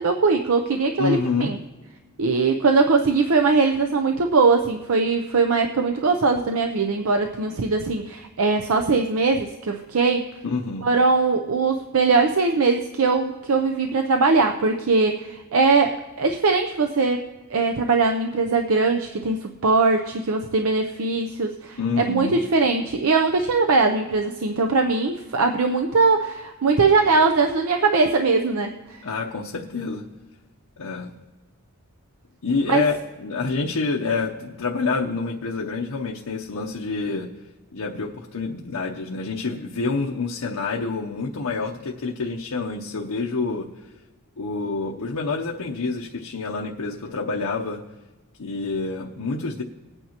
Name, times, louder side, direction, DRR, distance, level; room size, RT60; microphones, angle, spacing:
voice 1, 0.0-1.6 2.2-10.3 10.8-17.2 17.5-29.0 32.7-32.8, right 4 dB, 70° right, 4 dB, 0.6 m, -21 dB
voice 2, 1.0-1.6 10.4-10.8 21.8-22.4 29.0-30.0 30.8-31.1 32.4-37.3 37.7-43.7 44.4-47.8 48.4-49.6, left 4 dB, 85° left, -1 dB, 0.8 m, -27 dB
21.0 x 9.0 x 2.9 m, 1.2 s
head